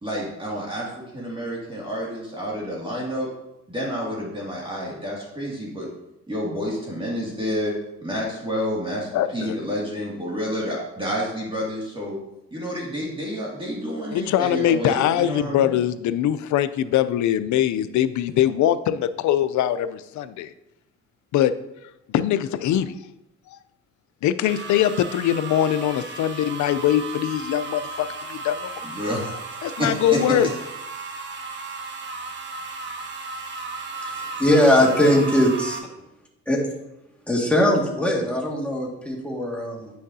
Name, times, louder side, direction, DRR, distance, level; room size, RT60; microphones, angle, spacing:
voice 1, 0.0-3.3 3.7-5.9 6.3-7.7 8.0-12.2 12.5-15.7 28.8-29.3 29.8-30.2, equal, 15° right, -4 dB, 2.2 m, -29 dB
voice 2, 9.1-9.6 14.1-20.5 21.3-21.5 22.1-23.0 24.2-28.7 29.6-30.5 34.8-35.1, left 11 dB, 75° left, 13 dB, 0.5 m, -22 dB
sound 1, 24.4-35.8, right 3 dB, 40° right, 1.1 m, -35 dB
voice 3, 34.1-35.8 36.5-36.6 37.3-39.9, left 1 dB, 5° left, -2 dB, 1.9 m, -20 dB
9.2 x 6.3 x 2.7 m, 0.89 s
cardioid pair, 90°, 30 cm